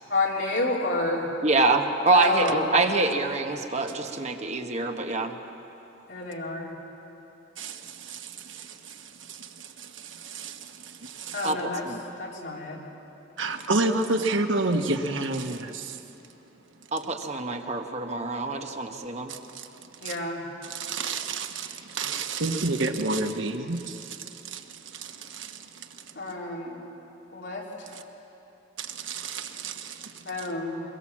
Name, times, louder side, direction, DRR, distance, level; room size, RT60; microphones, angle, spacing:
voice 1, 0.1-1.2 2.1-2.6 6.1-6.7 11.3-11.9 12.2-12.8 20.0-20.4 26.2-26.8 27.3-27.9 30.2-30.8, left 2 dB, 65° left, 3.9 m, -29 dB
voice 2, 1.4-5.3 11.4-12.0 16.9-19.3, right 3 dB, 35° right, 1.3 m, -25 dB
voice 3, 7.6-11.5 13.4-16.0 19.3-20.2 20.6-26.2 27.9-28.0 28.8-30.5, right 2 dB, 75° right, 1.4 m, -31 dB
23.5 x 22.0 x 7.5 m
head